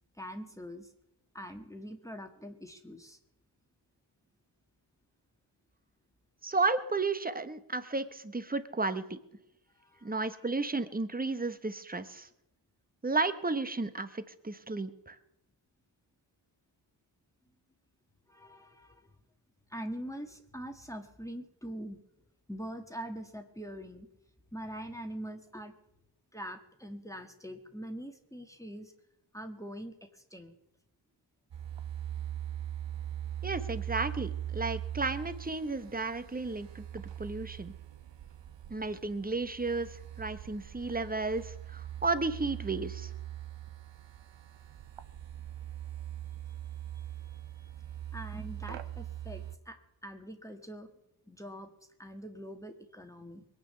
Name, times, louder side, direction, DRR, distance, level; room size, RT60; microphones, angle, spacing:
voice 1, 0.2-0.9 1.3-3.2 9.8-10.2 18.3-19.1 19.7-22.0 22.5-24.1 24.5-25.8 26.3-28.9 29.3-30.5 47.0-47.1 47.6-47.7 48.1-50.9 51.3-51.7 52.0-53.5, equal, 5° left, 5 dB, 1.7 m, -43 dB
voice 2, 6.4-9.2 10.0-12.3 13.0-15.2 33.4-37.7 38.7-43.1, right 3 dB, 20° right, 12 dB, 1.2 m, -33 dB
sound 1, 31.5-49.6, right 11 dB, 65° right, 1.1 m, -41 dB
21.5 x 8.9 x 6.8 m, 0.84 s
cardioid pair, 80°, 48 cm